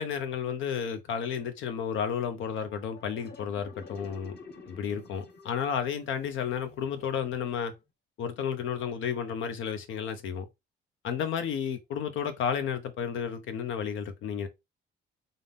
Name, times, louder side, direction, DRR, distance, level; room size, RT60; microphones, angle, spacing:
voice 1, 0.0-4.4 4.7-7.7 8.2-10.5 11.0-14.5, left 7 dB, 80° left, 0.8 m, -32 dB
sound 1, 2.4-7.8, left 4 dB, 55° left, 1.2 m, -50 dB
3.7 x 2.7 x 3.5 m
cardioid pair, 90°, 20 cm